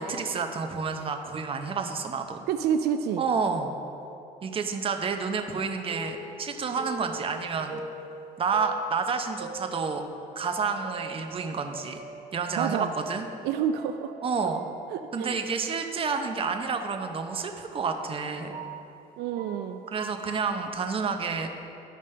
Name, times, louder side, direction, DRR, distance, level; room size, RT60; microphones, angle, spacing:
voice 1, 0.0-2.5 3.2-3.7 4.4-7.8 8.4-10.0 10.4-12.0 12.3-13.3 14.2-14.6 15.1-18.5 19.9-21.5, right 5 dB, 35° right, 5 dB, 0.7 m, -29 dB
voice 2, 2.5-3.2 12.6-12.9 13.4-14.1 14.9-15.4 19.2-19.8, right 8 dB, 80° right, 8 dB, 0.4 m, -28 dB
sound 1, 5.9-10.3 10.8-14.1 14.4-20.5, right 3 dB, 60° right, 1.3 m, -43 dB
12.5 x 5.1 x 3.3 m, 2.7 s
cardioid pair, 110°, 17 cm